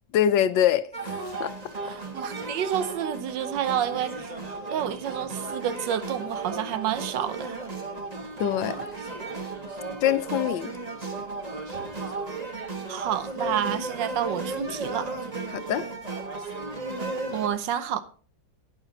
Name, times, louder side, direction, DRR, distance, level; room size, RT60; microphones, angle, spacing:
voice 1, 0.1-1.1 1.4-1.5 8.4-8.8 10.0-10.7 15.5-15.8, left 10 dB, 80° left, 1.3 m, -24 dB
sound 1, 0.9-17.5, right 3 dB, 25° right, 1.2 m, -34 dB
voice 2, 1.8-4.3 4.7-7.6 12.9-15.1 17.3-18.0, right 9 dB, 75° right, 1.4 m, -29 dB
11.0 x 9.1 x 4.0 m
omnidirectional pair, 2.0 m